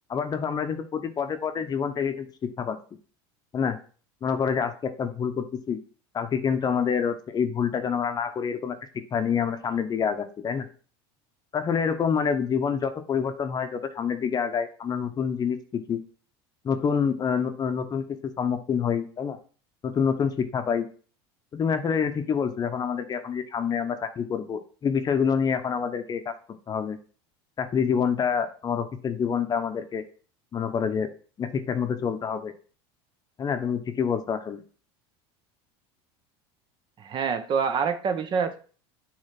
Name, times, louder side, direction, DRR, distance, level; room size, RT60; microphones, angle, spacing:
voice 1, 0.1-2.3 2.6-2.8 3.5-3.8 4.2-5.8 6.1-8.8 9.1-10.7 11.5-16.0 16.6-19.4 19.8-20.9 21.5-26.3 26.7-27.0 27.6-30.0 30.5-31.1 31.4-32.5 33.4-34.6, left 6 dB, 30° left, 8 dB, 0.8 m, -27 dB
voice 2, 37.0-38.6, right 6 dB, 35° right, 10 dB, 0.8 m, -26 dB
6.6 x 3.2 x 5.9 m, 0.40 s
supercardioid pair, 105°, 14 cm